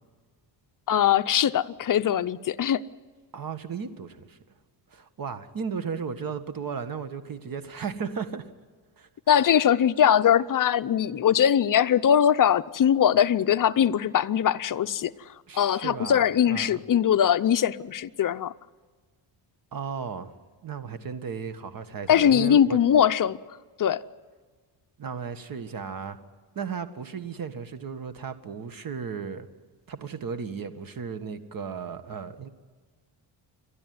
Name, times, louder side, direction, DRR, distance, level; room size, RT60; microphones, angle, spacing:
voice 1, 0.9-2.8 9.3-15.1 15.5-18.5 22.1-23.4 23.8-24.0, left 9 dB, 40° left, 0.7 m, -21 dB
voice 2, 3.3-4.4 4.9-8.4 9.0-9.1 9.5-9.6 15.5-16.8 19.7-20.3 20.6-22.8 25.0-26.2 26.6-29.5 29.9-32.5, right 6 dB, 45° right, 1.7 m, -35 dB
29.5 x 12.0 x 9.6 m
cardioid pair, 125°, 48 cm